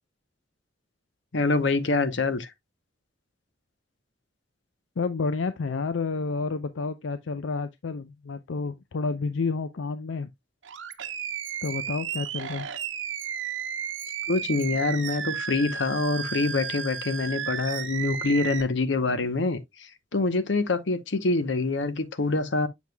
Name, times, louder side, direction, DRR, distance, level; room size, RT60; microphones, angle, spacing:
voice 1, 1.3-2.5 14.3-22.7, left 3 dB, 70° left, 0.9 m, -25 dB
voice 2, 5.0-10.3 11.6-12.7, left 4 dB, 85° left, 0.5 m, -30 dB
Animal, 10.6-18.6, right 8 dB, 80° right, 0.9 m, -33 dB
7.2 x 6.1 x 2.2 m
head